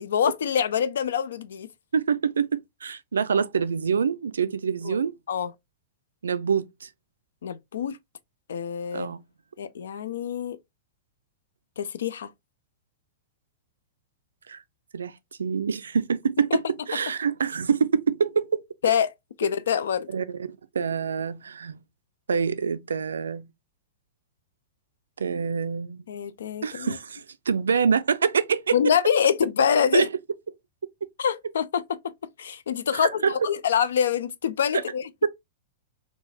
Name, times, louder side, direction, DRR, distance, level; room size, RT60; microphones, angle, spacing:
voice 1, 0.0-1.7 4.8-5.0 5.3-5.5 7.4-8.0 8.5-9.1 9.6-10.6 11.8-12.3 16.5-16.6 18.8-19.1 19.4-20.1 26.1-27.0 28.7-30.1 31.2-32.0 32.4-35.1, left 7 dB, 65° left, 0.4 m, -25 dB
voice 2, 1.9-2.5 2.8-5.1 6.2-6.9 8.9-9.2 14.5-14.6 14.9-15.1 15.4-16.6 16.9-18.6 20.1-21.8 22.3-23.5 25.2-26.0 26.6-28.8 29.9-30.1 32.9-33.4 34.7-34.8, right 6 dB, 75° right, 0.3 m, -26 dB
3.8 x 2.4 x 2.6 m
figure-of-eight pair, 100°, 0 cm